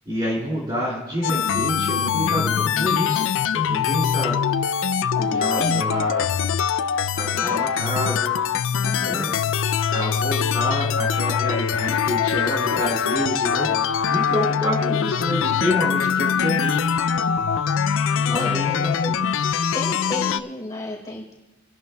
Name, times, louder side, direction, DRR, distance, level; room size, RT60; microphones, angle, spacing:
voice 1, 0.1-4.4 5.3-6.3 7.2-8.3 9.0-9.3 9.9-13.7 14.1-16.8 18.1-19.2, equal, 20° right, -5 dB, 2.5 m, -28 dB
sound 1, 1.2-20.4, left 7 dB, 65° left, 0.4 m, -23 dB
voice 2, 5.2-5.8 7.4-7.5 8.8-9.2 18.0-19.1 19.7-21.3, left 1 dB, 20° left, -3 dB, 4.1 m, -33 dB
28.5 x 11.0 x 2.3 m, 1.1 s
head